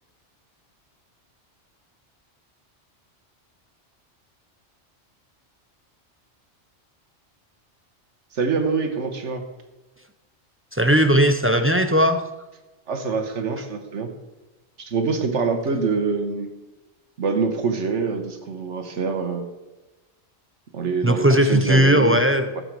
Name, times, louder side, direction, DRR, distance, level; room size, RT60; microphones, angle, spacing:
voice 1, 8.3-9.5 12.9-14.1 14.8-16.5 17.2-19.5 20.7-22.2 22.5-22.6, right 4 dB, 80° right, 6 dB, 1.5 m, -25 dB
voice 2, 10.7-12.2 21.0-22.6, equal, 20° right, 8 dB, 0.3 m, -18 dB
13.0 x 8.0 x 4.7 m, 1.1 s
omnidirectional pair, 1.2 m